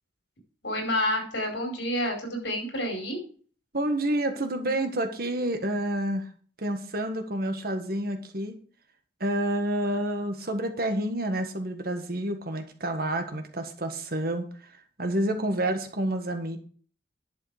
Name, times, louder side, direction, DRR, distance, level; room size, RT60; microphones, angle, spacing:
voice 1, 0.6-3.2, left 1 dB, 80° left, 2 dB, 4.9 m, -29 dB
voice 2, 3.7-6.3 6.6-8.6 9.2-14.5 15.0-16.6, right 1 dB, 55° right, 6 dB, 1.6 m, -29 dB
11.0 x 6.9 x 5.0 m, 0.43 s
head